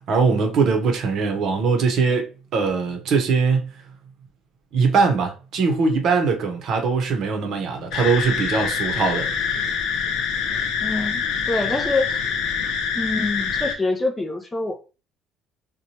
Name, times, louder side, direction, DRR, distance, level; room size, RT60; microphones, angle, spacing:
voice 1, 0.1-3.7 4.7-9.3, right 4 dB, 55° right, 0.7 m, -21 dB
sound 1, 7.9-13.7, left 6 dB, 70° left, 0.5 m, -25 dB
voice 2, 10.8-12.2 12.9-14.8, left 2 dB, 15° left, 0.4 m, -25 dB
3.0 x 2.2 x 2.7 m
cardioid pair, 130°, 0 cm